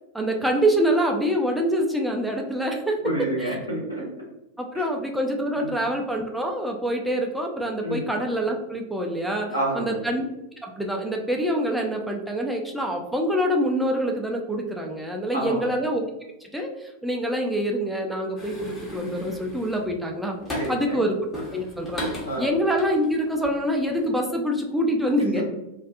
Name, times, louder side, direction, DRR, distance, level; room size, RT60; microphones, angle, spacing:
voice 1, 0.1-3.0 3.4-3.5 4.6-9.5 9.7-10.3 10.6-16.0 16.5-20.4 20.7-21.1 21.5-22.0 22.4-25.4, equal, 5° right, 1 dB, 0.3 m, -25 dB
voice 2, 3.0-4.0 4.7-4.8 5.6-5.8 7.8-8.0 9.5-10.0 15.3-15.7 20.5-21.0 22.3-22.5 25.3-25.4, right 1 dB, 90° left, -6 dB, 0.9 m, -28 dB
sound 1, 18.4-20.9 21.3-23.5 23.8-24.1, left 1 dB, 15° left, 0.8 m, -36 dB
2.4 x 2.3 x 2.3 m, 0.92 s
figure-of-eight pair, 90°, 0 cm